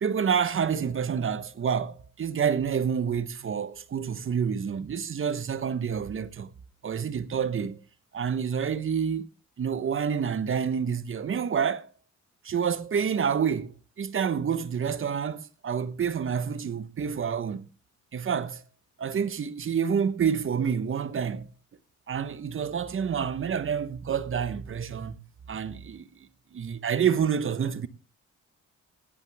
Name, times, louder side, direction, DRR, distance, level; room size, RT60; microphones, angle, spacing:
voice 1, 0.0-6.5 6.8-7.8 8.1-9.3 9.6-11.9 12.4-17.7 18.1-18.6 19.0-21.5 22.1-25.2 25.5-27.9, right 7 dB, 45° right, 1.1 m, -28 dB
17.0 x 11.0 x 3.5 m
cardioid pair, 90°, 30 cm